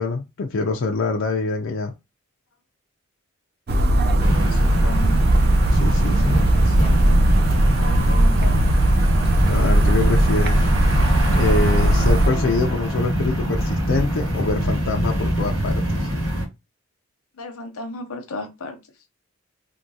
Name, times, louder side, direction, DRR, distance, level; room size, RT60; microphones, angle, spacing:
voice 1, 0.0-1.9 5.7-6.4 9.5-10.6 11.4-16.1, left 3 dB, 60° left, 0.4 m, -25 dB
sound 1, 3.7-12.3, right 1 dB, 50° right, 0.4 m, -18 dB
sound 2, 4.2-16.4, equal, 70° right, 1.3 m, -24 dB
voice 2, 4.3-5.2 5.8-7.2 7.8-8.7 17.4-18.8, left 2 dB, 90° left, 0.8 m, -34 dB
3.5 x 2.2 x 2.7 m
head